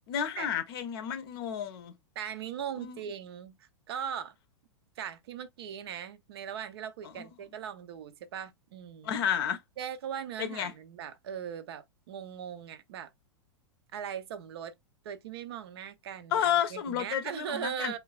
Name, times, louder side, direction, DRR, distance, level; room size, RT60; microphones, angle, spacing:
voice 1, 0.1-1.9 2.8-3.0 9.0-9.6 10.4-10.7 16.3-18.0, left 9 dB, 50° left, 0.6 m, -31 dB
voice 2, 2.2-4.3 5.0-9.2 9.8-13.1 13.9-14.7 15.0-18.0, right 8 dB, 55° right, 0.4 m, -39 dB
3.1 x 2.2 x 2.3 m
figure-of-eight pair, 100°, 16 cm